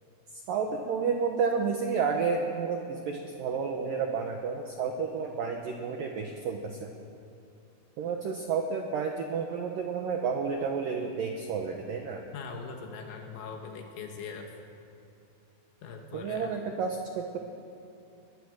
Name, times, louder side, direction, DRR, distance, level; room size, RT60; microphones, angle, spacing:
voice 1, 0.3-6.9 8.0-12.2 16.1-17.4, right 5 dB, 90° right, 3 dB, 1.9 m, -31 dB
voice 2, 12.3-14.5 15.8-16.5, left 5 dB, 70° left, 3 dB, 3.7 m, -41 dB
22.0 x 20.5 x 6.5 m, 2.7 s
omnidirectional pair, 5.7 m